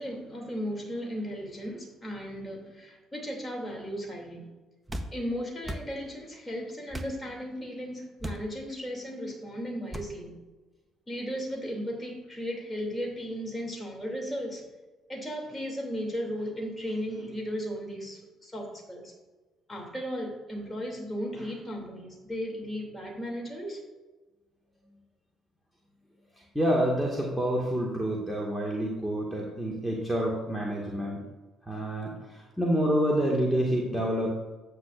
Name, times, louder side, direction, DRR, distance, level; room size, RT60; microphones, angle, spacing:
voice 1, 0.0-4.5 5.1-10.3 11.1-14.6 15.1-19.1 19.7-23.8, equal, 15° left, 0 dB, 2.8 m, -36 dB
sound 1, 4.9-5.1 5.6-5.9 6.9-7.1 8.2-8.5 9.9-10.1, right 1 dB, 15° right, 0.9 m, -36 dB
voice 2, 26.5-31.2 31.7-34.3, equal, ahead, -3 dB, 1.9 m, -28 dB
10.5 x 8.2 x 2.6 m, 1.2 s
hypercardioid pair, 50°, 0 cm